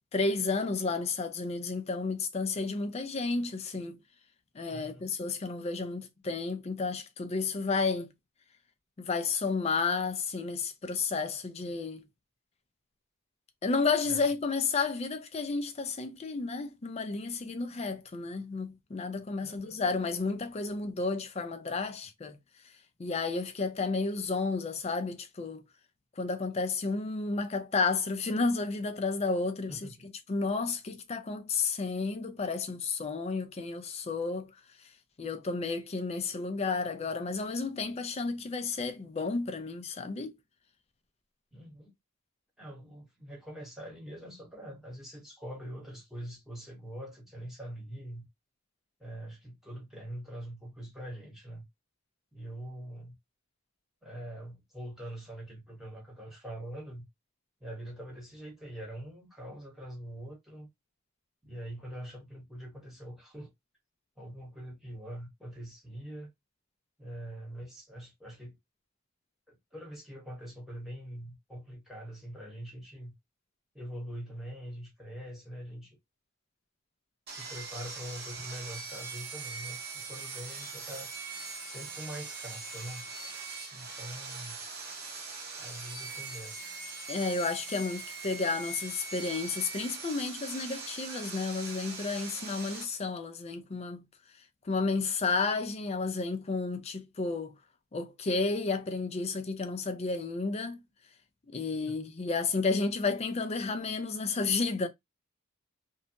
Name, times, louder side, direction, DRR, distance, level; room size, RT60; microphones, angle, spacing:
voice 1, 0.1-4.0 4.6-8.1 9.0-12.0 13.6-22.4 23.0-25.6 26.2-34.5 35.2-40.4 87.1-94.0 94.7-97.5 97.9-100.8 101.5-104.9, left 4 dB, 30° left, 0.4 m, -32 dB
voice 2, 4.7-5.1 14.1-14.3 19.4-19.8 29.7-30.0 41.5-41.9 42.6-48.3 49.0-51.6 52.3-53.1 54.0-57.0 57.6-60.7 61.4-63.5 64.2-66.3 67.0-68.6 69.5-73.1 73.7-76.0 77.3-81.1 81.6-83.1 83.7-84.6 85.6-87.0 101.9-102.0, equal, ahead, 1.1 m, -44 dB
Sawing, 77.3-92.8, right 4 dB, 50° right, 0.8 m, -41 dB
2.7 x 2.1 x 2.7 m
head